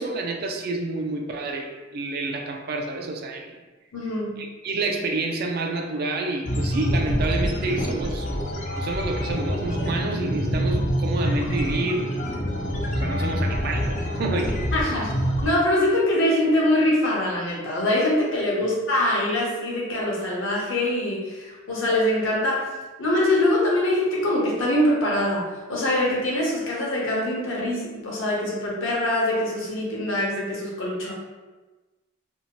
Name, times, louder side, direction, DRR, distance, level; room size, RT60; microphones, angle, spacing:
voice 1, 0.0-3.5 4.4-8.3 8.8-12.1 12.9-14.7, right 2 dB, 50° right, 3 dB, 0.3 m, -29 dB
voice 2, 3.9-4.3 14.7-15.1 15.4-22.7 23.0-25.4 25.7-31.1, left 1 dB, 70° left, -3 dB, 0.7 m, -23 dB
sound 1, 6.4-15.5, equal, 40° left, 0.4 m, -26 dB
2.7 x 2.1 x 2.9 m, 1.2 s
head